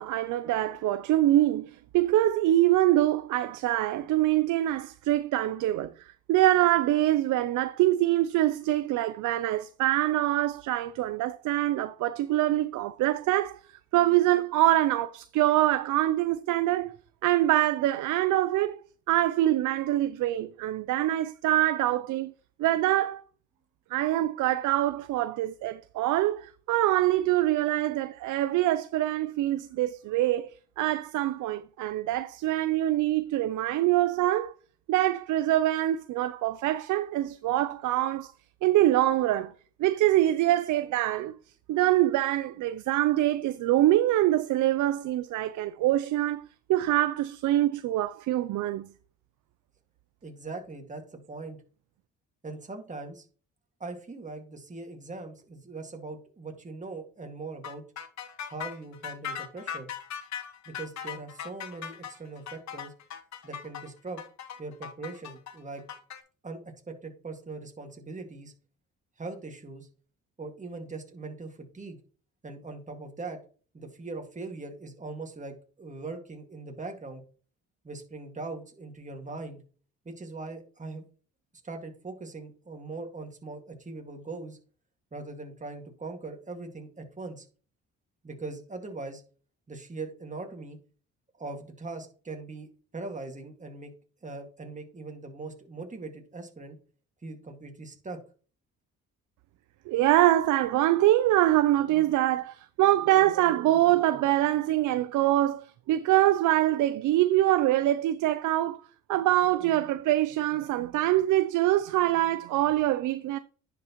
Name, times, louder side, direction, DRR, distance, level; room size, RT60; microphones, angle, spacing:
voice 1, 0.0-5.9 6.3-13.6 13.9-17.0 17.2-18.8 19.1-22.3 22.6-23.2 23.9-34.5 34.9-38.3 38.6-39.5 39.8-41.3 41.7-48.9 99.9-108.8 109.1-113.4, right 14 dB, 80° right, 0.5 m, -24 dB
voice 2, 50.2-51.6 52.4-53.3 53.8-57.8 58.4-59.9 60.7-62.9 63.4-64.2 64.6-65.8 66.4-66.6 66.9-68.5 69.2-69.9 70.4-72.0 72.4-73.4 73.7-77.2 77.8-79.6 80.1-81.0 81.6-84.6 85.1-87.5 88.2-89.2 89.7-90.8 91.3-93.9 94.2-96.8 97.2-98.2, right 3 dB, 25° right, 2.0 m, -40 dB
sound 1, 57.6-66.2, left 8 dB, 65° left, 1.1 m, -39 dB
10.0 x 5.9 x 3.0 m
cardioid pair, 90°, 30 cm